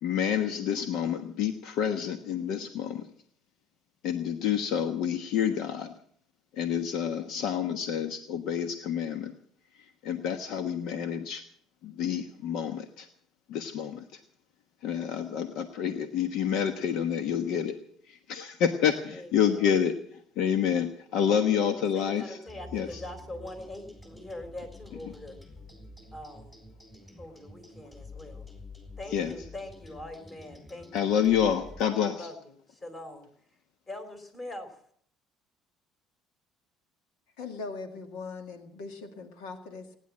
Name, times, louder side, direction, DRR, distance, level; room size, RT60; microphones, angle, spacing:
voice 1, 0.0-3.1 4.0-5.9 6.5-9.3 9.7-11.4 11.8-13.1 13.5-14.2 14.8-17.8 18.0-22.4 22.7-23.0 29.1-29.3 30.9-32.3, left 8 dB, 70° left, 8 dB, 1.2 m, -28 dB
voice 2, 19.1-19.7 21.3-25.4 26.1-26.5 27.2-28.5 29.0-31.1 32.1-33.3 33.9-34.8, left 1 dB, 25° left, 7 dB, 4.1 m, -43 dB
sound 1, 22.5-31.9, left 2 dB, 10° left, 4.5 m, -48 dB
voice 3, 37.4-40.0, left 4 dB, 90° left, 6 dB, 2.0 m, -40 dB
18.5 x 10.0 x 7.4 m, 0.63 s
cardioid pair, 110°, 0 cm